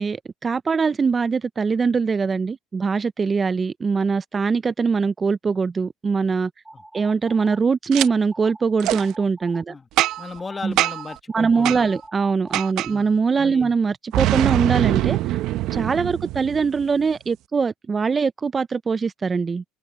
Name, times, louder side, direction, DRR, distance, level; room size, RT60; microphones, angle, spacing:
voice 1, 0.0-6.5 6.9-9.8 10.6-10.7 11.3-15.2 15.7-19.6, right 5 dB, 25° right, 0.5 m, -22 dB
sound 1, 6.6-7.6 8.0-8.6 9.0-9.6 10.0-12.7, right 1 dB, 5° right, 1.0 m, -43 dB
Boom, 7.9-8.1 8.8-9.0 10.0-10.4 10.8-11.1 11.7-11.8 12.5-12.9 14.1-16.8, right 16 dB, 65° right, 0.7 m, -23 dB
voice 2, 10.2-11.9 12.9-13.1 13.4-13.7 16.1-16.2, left 4 dB, 20° left, 1.3 m, -36 dB
supercardioid pair, 110°, 0 cm